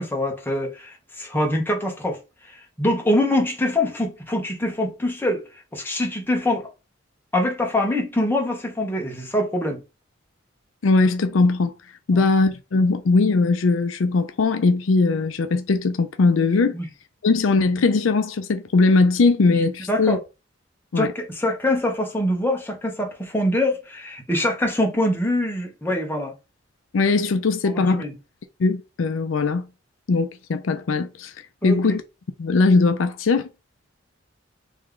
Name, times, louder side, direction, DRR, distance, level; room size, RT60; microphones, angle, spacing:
voice 1, 0.0-2.2 2.5-5.4 5.7-6.7 7.3-9.8 12.1-12.2 16.7-16.9 19.9-20.2 21.0-26.3 27.6-28.1 31.6-31.8, left 1 dB, 10° left, 1.1 m, -24 dB
voice 2, 10.8-11.7 12.1-16.7 17.2-20.2 20.9-21.1 26.9-28.0 28.6-29.7 30.1-31.3 31.6-32.0 32.4-33.5, left 3 dB, 70° left, 0.5 m, -20 dB
3.5 x 3.2 x 3.7 m
head